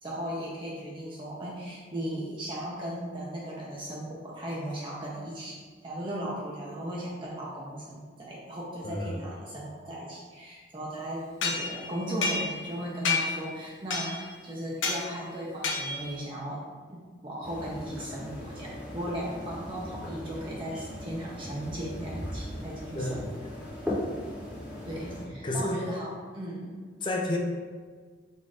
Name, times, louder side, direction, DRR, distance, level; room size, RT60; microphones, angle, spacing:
voice 1, 0.0-16.6 16.9-23.2 24.8-26.8, equal, 25° right, -5 dB, 0.6 m, -37 dB
voice 2, 8.8-9.2 22.9-23.2 25.4-25.8 27.0-27.4, left 1 dB, 25° left, 1 dB, 0.5 m, -30 dB
sound 1, 11.4-12.7 13.0-13.5 13.9-14.3 14.8-15.0 15.6-16.1, left 4 dB, 85° left, 0.7 m, -30 dB
sound 2, 17.4-25.2, left 1 dB, 5° right, 0.9 m, -38 dB
4.0 x 2.6 x 4.8 m, 1.5 s
head